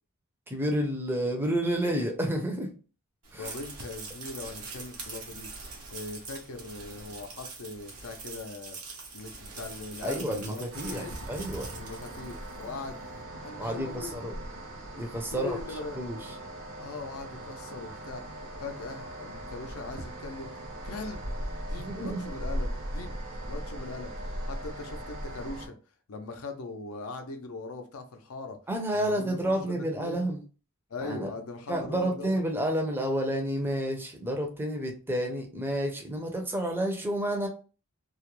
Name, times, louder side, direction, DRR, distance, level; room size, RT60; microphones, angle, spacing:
voice 1, 0.5-2.7 3.3-3.5 10.0-11.7 13.6-14.3 15.0-16.4 21.8-22.3 28.7-30.4 31.0-31.3 31.7-37.5, right 1 dB, 10° right, 1 dB, 0.5 m, -30 dB
sound 1, 3.2-12.8, right 4 dB, 90° right, 0.9 m, -43 dB
voice 2, 3.4-5.5 5.9-8.8 9.1-11.2 11.7-13.1 13.4-14.3 15.3-16.0 16.8-18.2 18.6-20.5 20.8-21.3 21.7-24.1 24.5-25.7 26.1-28.6 28.9-30.2 30.9-32.4, left 3 dB, 65° left, 6 dB, 0.5 m, -40 dB
sound 2, 10.7-25.7, right 1 dB, 60° right, 0.6 m, -39 dB
2.3 x 2.1 x 3.0 m, 0.36 s
head